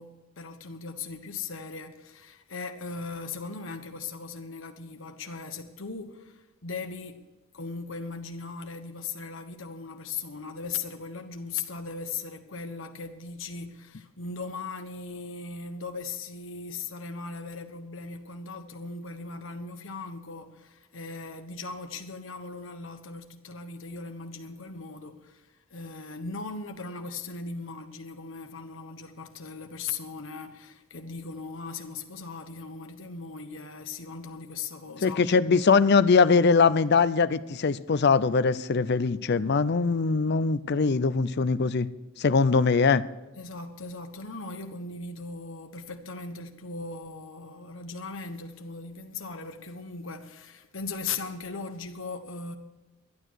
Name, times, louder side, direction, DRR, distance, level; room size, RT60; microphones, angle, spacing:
voice 1, 0.0-7.3 7.5-35.2 43.4-52.6, left 4 dB, 70° left, 1.2 m, -38 dB
voice 2, 35.0-41.9 42.2-43.0, left 4 dB, 55° left, 0.5 m, -22 dB
12.0 x 11.0 x 6.3 m
head